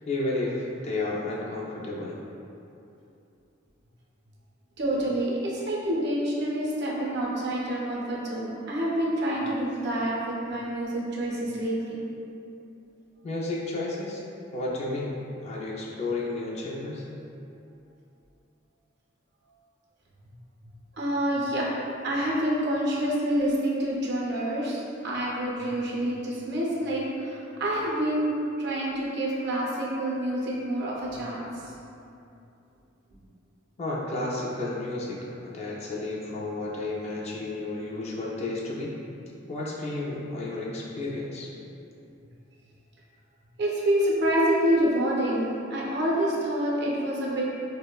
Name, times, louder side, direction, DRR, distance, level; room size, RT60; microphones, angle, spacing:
voice 1, 0.1-2.2 13.2-14.2 14.5-15.1 15.4-17.0 33.8-38.9 39.5-41.5, left 2 dB, 35° left, -4 dB, 0.3 m, -32 dB
voice 2, 4.8-12.0 20.9-21.7 22.0-31.7 43.6-47.5, right 1 dB, 60° right, -4 dB, 0.5 m, -27 dB
2.9 x 2.0 x 2.2 m, 2.7 s
head